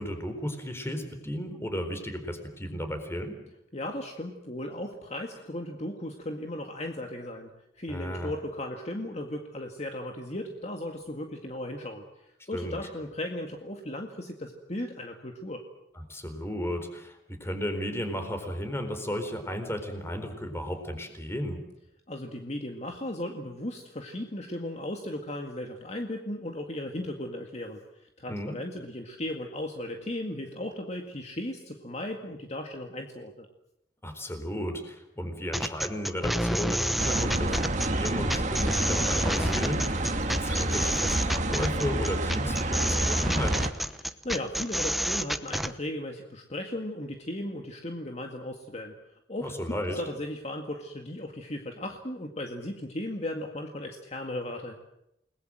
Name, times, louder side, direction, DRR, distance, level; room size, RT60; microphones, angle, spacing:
voice 1, 0.0-3.4 7.9-8.3 12.5-12.8 15.9-21.7 28.3-28.6 34.0-43.6 49.4-50.0, equal, 15° left, 7 dB, 4.3 m, -34 dB
voice 2, 3.7-7.5 7.8-15.6 22.1-33.5 44.0-54.7, left 1 dB, 40° left, 3 dB, 2.1 m, -36 dB
sound 1, 35.5-45.7, equal, ahead, 1.0 m, -29 dB
sound 2, 37.0-43.7, right 1 dB, 45° right, 2.0 m, -29 dB
29.5 x 20.5 x 7.7 m, 0.84 s
head